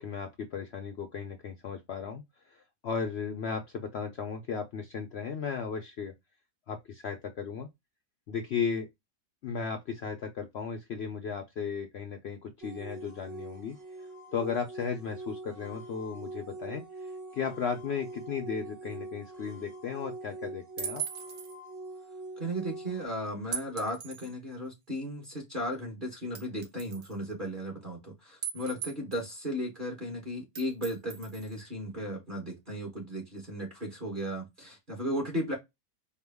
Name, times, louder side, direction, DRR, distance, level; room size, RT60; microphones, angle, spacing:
voice 1, 0.0-6.1 6.7-7.7 8.3-8.9 9.4-13.8 14.3-21.0, left 6 dB, 65° left, 0.6 m, -35 dB
sound 1, 12.6-23.0, right 2 dB, 15° right, 0.6 m, -43 dB
sound 2, 20.8-21.6 23.5-24.3 25.0-25.1 26.4-27.1 28.4-29.3 30.6-31.6, right 7 dB, 50° right, 1.1 m, -38 dB
voice 2, 22.4-35.5, equal, 35° right, 1.3 m, -35 dB
4.6 x 2.2 x 3.4 m
omnidirectional pair, 1.7 m